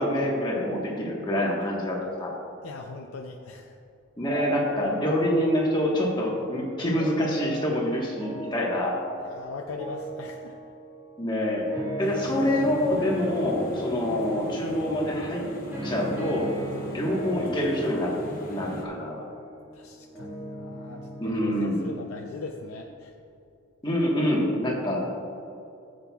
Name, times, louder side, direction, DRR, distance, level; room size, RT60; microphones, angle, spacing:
voice 1, 0.0-2.3 4.2-8.9 11.2-11.6 12.0-15.4 15.8-16.5 16.9-18.1 18.5-19.2 21.2-21.8 23.8-25.0, left 1 dB, 20° left, -3 dB, 1.3 m, -26 dB
voice 2, 2.6-3.8 9.2-10.6 19.7-21.1 21.4-23.1, left 3 dB, 85° left, 1 dB, 0.5 m, -40 dB
sound 1, 7.0-21.9, equal, 10° right, 1.7 m, -38 dB
sound 2, 12.0-18.8, right 1 dB, 40° left, 1.0 m, -39 dB
13.5 x 7.7 x 2.3 m, 2.6 s
head